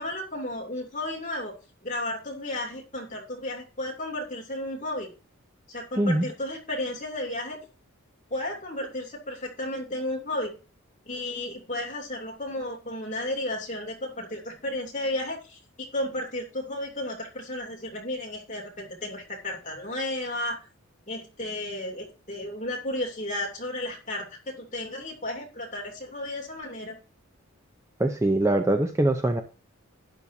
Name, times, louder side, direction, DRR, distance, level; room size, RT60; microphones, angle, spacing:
voice 1, 0.0-1.5 1.8-5.1 5.7-7.6 8.3-10.5 11.1-20.7 21.1-27.0, left 1 dB, 35° left, 0 dB, 2.8 m, -33 dB
voice 2, 28.0-29.4, right 1 dB, 15° right, 6 dB, 0.6 m, -23 dB
12.0 x 9.9 x 2.7 m, 0.33 s
head